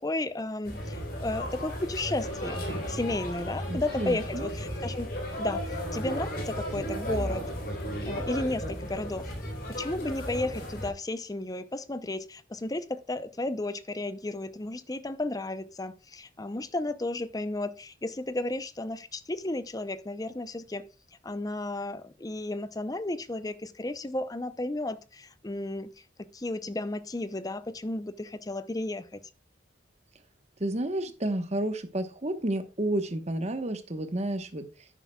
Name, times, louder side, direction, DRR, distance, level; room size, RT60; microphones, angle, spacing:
voice 1, 0.0-5.1 5.4-7.5 8.0-9.3 9.8-20.8 21.2-25.9 26.3-29.2, left 2 dB, 20° left, 0.6 m, -33 dB
sound 1, 0.6-10.9, equal, 50° left, 3.6 m, -34 dB
voice 2, 3.7-4.5 30.6-34.6, right 1 dB, 35° right, 1.1 m, -31 dB
10.5 x 9.2 x 2.3 m
head